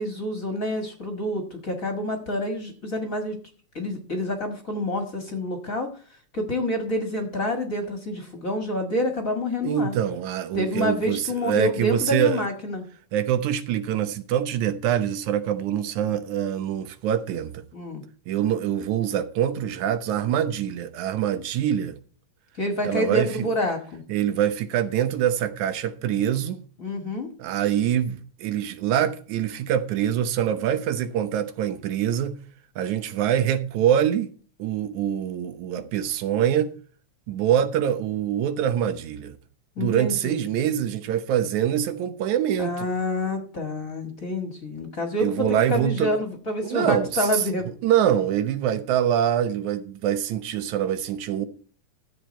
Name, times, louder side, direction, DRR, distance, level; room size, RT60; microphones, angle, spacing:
voice 1, 0.0-3.4 3.7-5.9 6.3-9.9 10.5-12.8 17.7-18.0 22.5-24.0 26.8-27.3 35.8-35.9 39.8-40.4 42.6-47.7, left 1 dB, 35° left, 1.7 m, -28 dB
voice 2, 9.6-12.4 13.1-17.6 18.3-22.0 22.9-23.5 24.1-26.6 27.4-32.4 32.8-34.3 34.6-36.7 37.3-39.4 39.8-42.9 45.2-46.2 46.6-47.4 47.8-51.5, right 10 dB, 85° right, 2.4 m, -24 dB
13.5 x 8.1 x 4.4 m
omnidirectional pair, 3.3 m